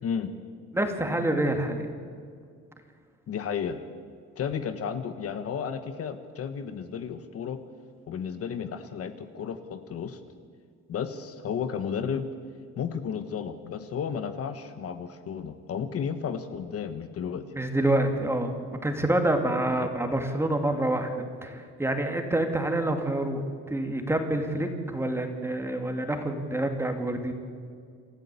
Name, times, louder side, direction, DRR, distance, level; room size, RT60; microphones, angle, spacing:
voice 1, 0.7-1.9 17.5-18.5 18.8-21.1 21.4-23.4 23.7-27.3, right 1 dB, 10° right, 5 dB, 2.5 m, -27 dB
voice 2, 3.3-3.8 4.4-7.6 8.1-10.2 10.9-12.3 12.8-17.5 19.8-19.9, left 7 dB, 50° left, 9 dB, 1.3 m, -33 dB
28.0 x 14.0 x 8.4 m, 2.1 s
cardioid pair, 130°, 30 cm